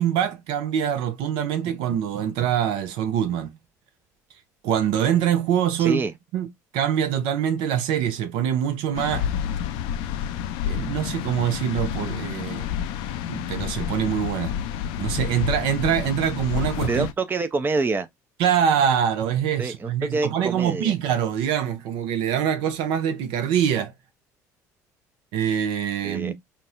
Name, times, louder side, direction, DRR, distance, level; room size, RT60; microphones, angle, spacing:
voice 1, 0.0-3.5 4.6-6.0 6.3-6.5 6.7-9.3 10.7-12.7 13.3-14.6 15.0-17.1 18.4-23.9 25.3-26.3, right 9 dB, 65° right, 0.6 m, -24 dB
voice 2, 5.8-6.1 16.9-18.1 19.6-20.9 26.0-26.3, right 3 dB, 20° right, 0.5 m, -26 dB
sound 1, 8.9-17.1, left 9 dB, 65° left, 0.4 m, -29 dB
4.0 x 2.2 x 2.4 m
hypercardioid pair, 60°, 9 cm